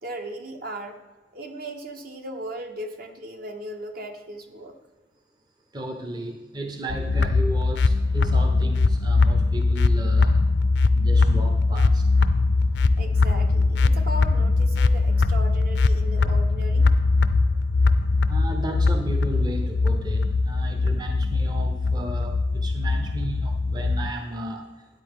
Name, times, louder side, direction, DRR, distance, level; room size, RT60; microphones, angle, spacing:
voice 1, 0.0-1.0 1.3-4.8 13.0-16.9, right 1 dB, 55° right, 4 dB, 1.2 m, -37 dB
voice 2, 5.7-10.4 10.9-12.1 18.3-24.9, right 1 dB, 25° right, 5 dB, 0.7 m, -34 dB
sound 1, 6.9-24.1, left 3 dB, 70° left, 0.5 m, -21 dB
12.5 x 9.6 x 3.7 m, 1.2 s
head